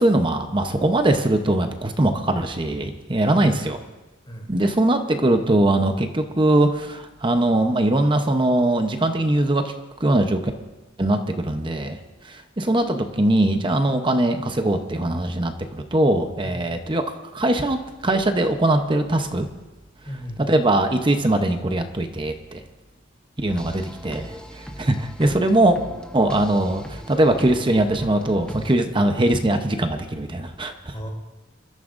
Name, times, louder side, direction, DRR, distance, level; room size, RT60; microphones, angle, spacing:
voice 1, 0.0-3.8 4.5-9.7 10.0-10.4 11.0-12.0 12.3-17.0 17.3-17.8 18.0-19.5 20.4-22.6 23.4-24.4 24.8-25.8 26.1-30.9, right 1 dB, 25° right, 6 dB, 0.8 m, -21 dB
voice 2, 3.2-3.6 4.3-4.7 16.4-16.6 20.0-20.5 30.9-31.1, equal, 25° left, -1 dB, 3.1 m, -36 dB
sound 1, 23.5-28.7, equal, 5° left, 0.9 m, -39 dB
26.5 x 13.0 x 2.6 m, 1.1 s
head